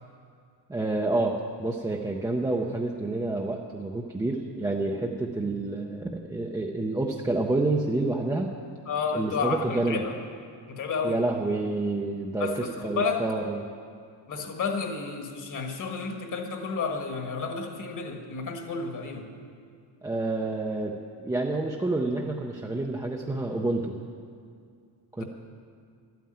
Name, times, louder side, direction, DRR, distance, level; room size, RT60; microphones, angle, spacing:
voice 1, 0.7-8.5 9.1-10.0 11.0-13.6 20.0-24.0 25.2-25.3, right 2 dB, 10° right, -1 dB, 0.5 m, -28 dB
voice 2, 8.9-10.1 10.7-11.2 12.4-13.2 14.3-19.3 25.2-25.3, left 5 dB, 45° left, 4 dB, 1.5 m, -31 dB
12.5 x 9.3 x 8.7 m, 2.3 s
wide cardioid pair, 180°, 41 cm